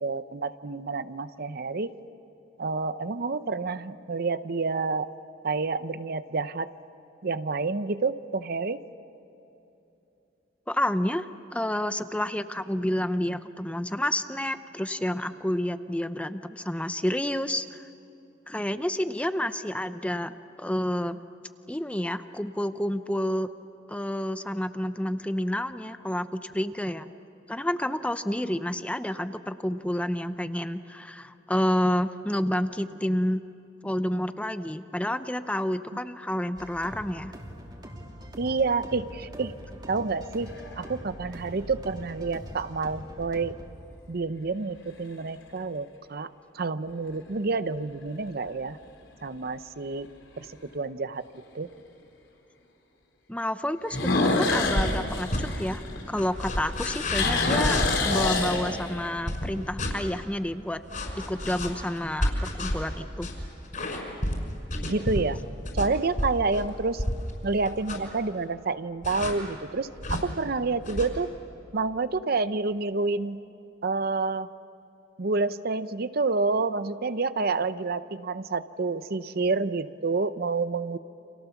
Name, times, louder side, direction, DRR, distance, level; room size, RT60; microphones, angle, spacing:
voice 1, 0.0-1.9 2.6-5.1 5.4-6.7 7.2-8.8 38.4-39.5 39.9-43.6 44.1-46.3 46.5-48.8 49.2-50.1 50.4-50.5 50.7-51.2 51.5-51.7 64.8-65.4 65.7-67.0 67.4-71.3 71.7-73.4 73.8-74.5 75.2-81.0, right 3 dB, 55° right, 13 dB, 0.7 m, -28 dB
voice 2, 10.7-17.8 18.5-21.2 21.7-23.5 23.9-27.1 27.5-33.4 33.8-37.3 53.3-55.8 56.1-60.8 61.2-63.3, left 1 dB, 5° left, 11 dB, 0.7 m, -29 dB
sound 1, 36.5-43.7, equal, 25° right, 2.7 m, -43 dB
sound 2, 40.2-40.9 41.6-41.7 46.9-47.4 47.8-47.9 48.5-48.6 48.8-48.9 50.4-50.5 53.9-56.4 56.7-59.1, left 3 dB, 85° left, 3.7 m, -26 dB
sound 3, 54.6-55.0 55.3-55.5 56.2-58.3 59.3-59.9 60.9-67.3 67.7-68.1 69.0-69.3 70.0-70.2 70.8-71.1, left 1 dB, 45° left, 5.7 m, -30 dB
30.0 x 27.5 x 7.1 m, 3.0 s
head